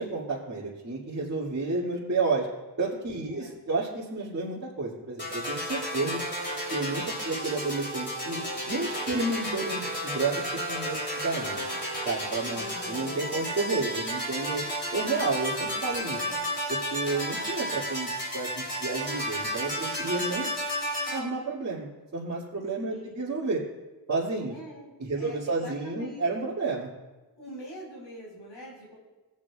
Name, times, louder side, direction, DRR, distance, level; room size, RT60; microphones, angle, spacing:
voice 1, 0.0-2.5 2.8-6.2 6.7-8.4 8.7-10.4 10.7-11.6 12.0-14.6 14.9-16.2 16.7-20.5 21.1-21.9 22.1-23.6 24.1-24.6 25.1-26.9, right 3 dB, 40° right, -10 dB, 2.4 m, -31 dB
voice 2, 3.2-3.6 7.2-7.4 12.5-13.4 16.1-16.6 22.9-23.4 24.5-26.2 27.4-28.9, equal, 85° left, -4 dB, 4.4 m, -44 dB
sound 1, 5.2-21.2, equal, 25° left, 3.2 m, -32 dB
24.5 x 8.5 x 2.4 m, 1.2 s
wide cardioid pair, 110°, 42 cm